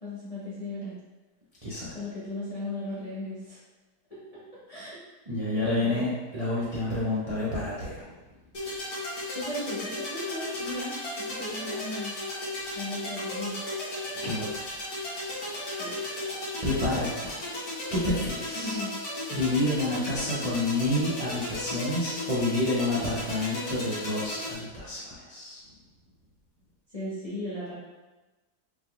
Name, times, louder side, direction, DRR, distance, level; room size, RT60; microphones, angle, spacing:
voice 1, 0.0-0.9 1.9-3.6 4.1-4.4 4.7-5.0 5.8-6.1 9.3-12.2 12.7-13.6 15.8-15.9 18.5-18.9 26.9-27.7, left 1 dB, 25° left, -10 dB, 0.9 m, -36 dB
voice 2, 1.6-2.0 5.3-8.1 14.1-14.6 16.6-17.3 17.9-18.8 19.3-25.6, left 2 dB, 30° right, -9 dB, 0.8 m, -29 dB
sound 1, 8.5-24.5, left 1 dB, 70° left, 1.8 m, -35 dB
5.1 x 3.5 x 2.4 m, 1.2 s
omnidirectional pair, 1.7 m